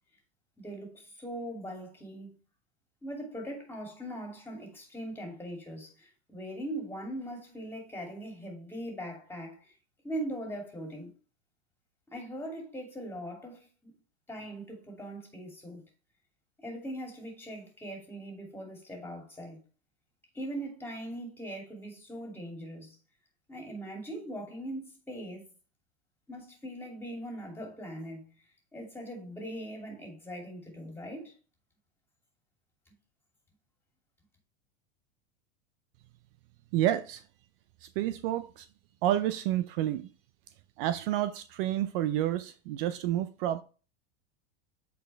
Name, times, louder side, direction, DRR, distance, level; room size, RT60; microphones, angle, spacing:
voice 1, 0.6-2.4 3.0-9.7 10.0-11.1 12.1-13.9 14.3-15.8 16.6-19.6 20.3-23.0 23.5-25.5 26.3-28.2 28.7-31.3, right 1 dB, 5° left, 2.7 m, -40 dB
voice 2, 36.7-37.2 37.8-38.7 39.0-40.1 40.8-43.6, right 12 dB, 55° right, 0.5 m, -29 dB
7.7 x 4.5 x 3.3 m
hypercardioid pair, 120°, 33 cm